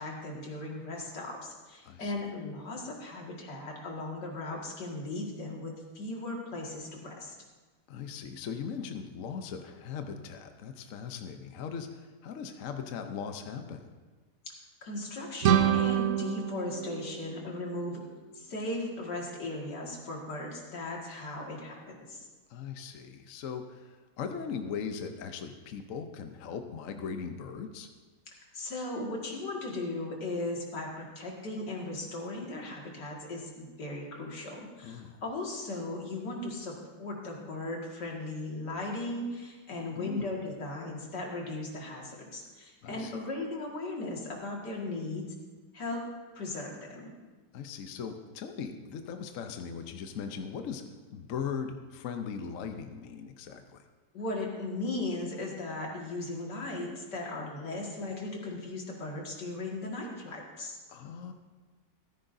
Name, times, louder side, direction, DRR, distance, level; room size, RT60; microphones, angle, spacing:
voice 1, 0.0-7.3 14.5-14.6 14.8-18.0 18.3-22.2 28.5-36.7 37.0-45.3 45.7-46.0 46.4-47.1 54.1-60.8, left 2 dB, 85° left, -1 dB, 2.6 m, -37 dB
voice 2, 7.9-13.9 22.5-27.9 34.8-35.2 39.9-40.3 42.8-43.2 47.5-50.8 51.1-53.8 60.9-61.3, left 6 dB, 60° left, 6 dB, 1.0 m, -39 dB
sound 1, 15.4-18.2, right 10 dB, 65° right, 0.7 m, -28 dB
15.0 x 14.0 x 2.7 m, 1.3 s
omnidirectional pair, 1.8 m